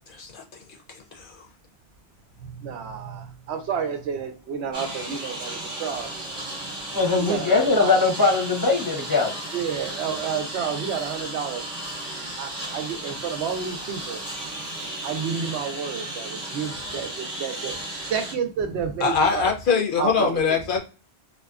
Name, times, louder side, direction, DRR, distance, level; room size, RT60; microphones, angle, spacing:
voice 1, 0.1-0.4 0.9-1.5 19.0-20.8, left 5 dB, 60° left, 1 dB, 0.7 m, -23 dB
voice 2, 2.6-6.1 7.2-8.0 9.5-11.6 12.4-14.2 15.0-17.8 18.0-19.5 20.0-20.4, right 7 dB, 80° right, 6 dB, 0.9 m, -30 dB
Engine, 4.7-18.3, right 1 dB, 40° right, 0.9 m, -34 dB
voice 3, 6.9-9.3, left 4 dB, 25° left, -1 dB, 0.6 m, -21 dB
2.6 x 2.2 x 2.3 m, 0.35 s
omnidirectional pair, 1.1 m